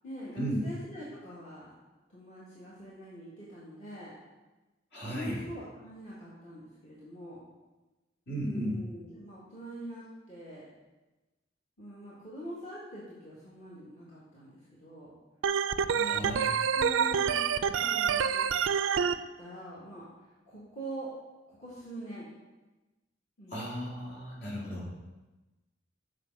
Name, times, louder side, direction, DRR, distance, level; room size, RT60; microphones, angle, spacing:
voice 1, 0.0-1.7 2.1-4.1 5.0-7.4 8.3-10.6 11.8-14.5 14.8-15.1 15.9-16.3 16.7-18.5 19.0-21.1 21.5-22.3 23.4-23.6, right 1 dB, 40° left, -8 dB, 1.6 m, -44 dB
voice 2, 4.9-5.3 8.3-8.8 16.0-16.5 23.5-24.9, equal, 60° left, -4 dB, 2.3 m, -35 dB
Organ, 15.4-19.1, right 7 dB, 80° right, 0.4 m, -27 dB
7.5 x 5.0 x 5.3 m, 1.1 s
head